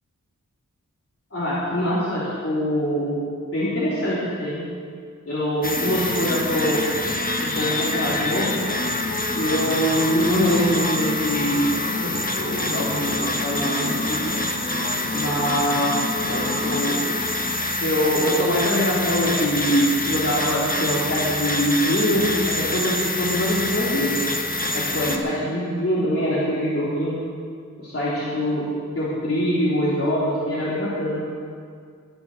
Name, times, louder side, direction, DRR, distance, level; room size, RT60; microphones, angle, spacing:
voice 1, 1.3-3.2 3.5-4.6 5.2-6.8 7.4-8.7 9.3-14.3 15.1-15.9 16.3-17.0 17.8-24.1 24.7-27.2 27.8-28.7 29.0-31.2, equal, 45° left, -10 dB, 3.4 m, -23 dB
sound 1, 5.6-25.2, left 2 dB, 30° left, 1.3 m, -26 dB
21.0 x 7.1 x 6.4 m, 2.1 s
wide cardioid pair, 80°, 31 cm